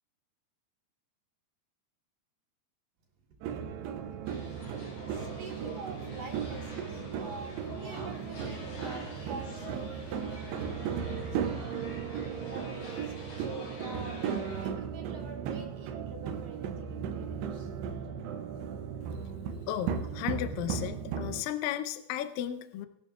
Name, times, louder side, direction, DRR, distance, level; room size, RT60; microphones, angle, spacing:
voice 1, 3.4-4.2 5.1-11.7 12.5-17.7, right 3 dB, 60° right, 0 dB, 2.9 m, -46 dB
sound 1, 3.4-21.4, right 7 dB, 80° right, 2.7 m, -36 dB
sound 2, 4.3-14.6, left 1 dB, 70° left, 7.8 m, -46 dB
voice 2, 19.7-22.9, left 11 dB, 85° left, 10 dB, 2.0 m, -34 dB
21.0 x 12.0 x 2.4 m, 0.80 s
omnidirectional pair, 5.0 m